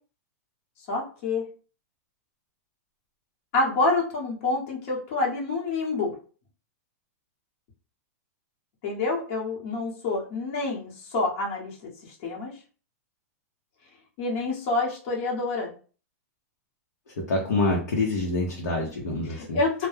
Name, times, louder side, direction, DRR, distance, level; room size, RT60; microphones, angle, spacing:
voice 1, 0.9-1.4 3.5-6.1 8.8-11.8 12.2-12.5 14.2-15.7 19.3-19.9, left 3 dB, 55° left, -3 dB, 1.0 m, -27 dB
voice 2, 17.1-19.6, left 2 dB, 85° left, -1 dB, 0.8 m, -26 dB
2.2 x 2.1 x 3.2 m, 0.39 s
hypercardioid pair, 135°, 9 cm